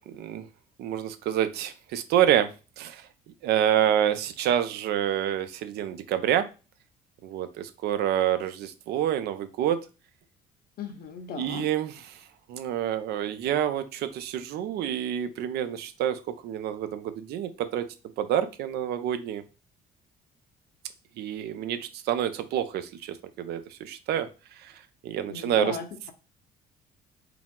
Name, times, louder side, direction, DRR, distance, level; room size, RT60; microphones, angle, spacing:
voice 1, 0.1-0.4 0.8-2.5 2.8-3.1 3.4-6.5 7.2-9.8 11.4-12.2 12.5-17.8 18.2-19.4 21.2-24.3 24.6-25.8, right 10 dB, 75° right, 10 dB, 0.5 m, -28 dB
voice 2, 10.8-11.7 25.3-26.1, left 7 dB, 65° left, 7 dB, 0.8 m, -36 dB
4.7 x 2.0 x 3.6 m, 0.32 s
cardioid pair, 110°, 17 cm